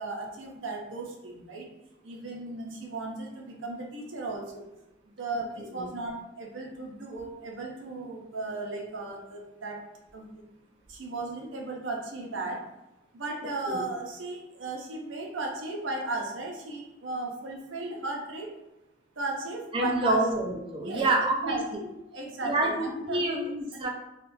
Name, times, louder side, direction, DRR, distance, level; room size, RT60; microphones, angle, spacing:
voice 1, 0.0-1.7 2.0-4.7 5.2-9.8 10.1-10.4 10.9-12.7 13.1-18.6 19.2-20.2 20.8-21.1 21.4-21.6 22.1-23.3, right 3 dB, 85° right, 0 dB, 0.7 m, -36 dB
voice 2, 5.6-5.9 13.7-13.8 19.7-21.6 22.4-23.9, right 2 dB, 25° right, 0 dB, 0.4 m, -27 dB
3.5 x 2.3 x 2.6 m, 0.94 s
head